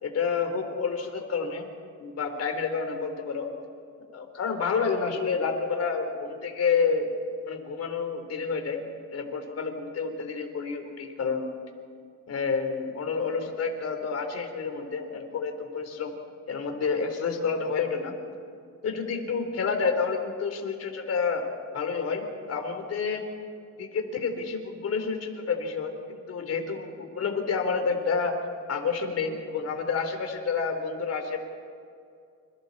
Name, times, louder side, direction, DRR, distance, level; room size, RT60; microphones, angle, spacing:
voice 1, 0.0-1.7 2.0-3.5 4.1-7.1 7.5-8.8 9.1-11.5 12.3-16.1 16.5-18.1 18.8-21.5 21.7-23.3 23.8-28.4 28.7-31.4, left 5 dB, 55° left, 4 dB, 4.0 m, -29 dB
29.5 x 27.5 x 4.3 m, 2.3 s
cardioid pair, 105°, 29 cm